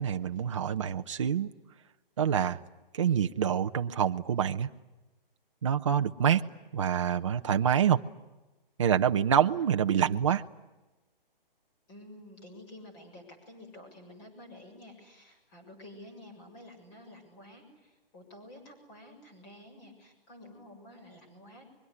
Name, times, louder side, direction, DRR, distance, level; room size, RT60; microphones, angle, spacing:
voice 1, 0.0-1.5 2.2-2.6 2.9-4.7 5.6-6.4 6.7-8.0 8.8-10.4, right 8 dB, 30° right, 7 dB, 0.9 m, -26 dB
voice 2, 11.9-21.6, left 1 dB, 20° left, 4 dB, 6.9 m, -50 dB
25.0 x 23.0 x 9.8 m, 1.1 s
hypercardioid pair, 170°, 29 cm